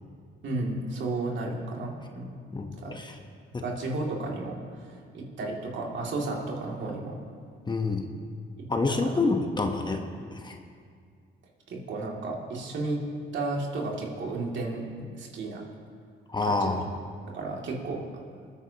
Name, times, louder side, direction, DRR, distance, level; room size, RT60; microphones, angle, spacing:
voice 1, 0.4-2.3 2.8-2.9 3.6-7.2 8.6-9.2 11.7-13.0 13.3-15.6 16.4-16.8 17.3-18.0, right 2 dB, 70° right, -2 dB, 2.5 m, -33 dB
voice 2, 2.5-3.1 3.5-3.6 7.7-8.1 8.7-10.0 10.3-10.6 16.3-16.9, left 3 dB, 20° left, 4 dB, 1.0 m, -27 dB
26.5 x 9.3 x 2.9 m, 2.2 s
cardioid pair, 90°, 20 cm